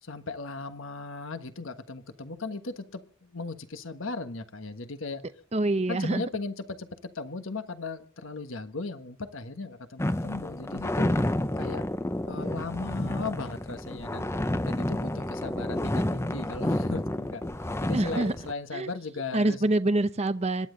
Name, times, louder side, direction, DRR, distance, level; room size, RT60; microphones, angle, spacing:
voice 1, 0.0-5.2 5.9-11.1 11.6-11.9 12.3-14.3 14.7-17.4 17.8-19.6, left 3 dB, 75° left, 1.4 m, -37 dB
voice 2, 5.5-6.2 17.9-18.3 18.7-18.9 19.3-20.7, right 2 dB, 30° right, 0.7 m, -26 dB
sound 1, 10.0-18.5, left 1 dB, 15° left, 0.6 m, -30 dB
26.5 x 12.0 x 3.9 m
head